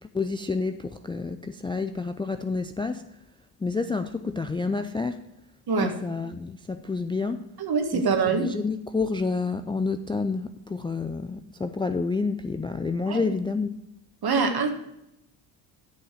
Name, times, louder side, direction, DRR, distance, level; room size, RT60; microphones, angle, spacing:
voice 1, 0.0-3.1 3.6-5.2 5.8-7.5 7.9-13.8, left 4 dB, 10° left, 8 dB, 0.4 m, -29 dB
voice 2, 7.6-8.5 13.1-13.3 14.2-14.7, right 5 dB, 50° right, 4 dB, 1.9 m, -24 dB
9.9 x 6.1 x 4.9 m, 0.85 s
supercardioid pair, 70°, 47 cm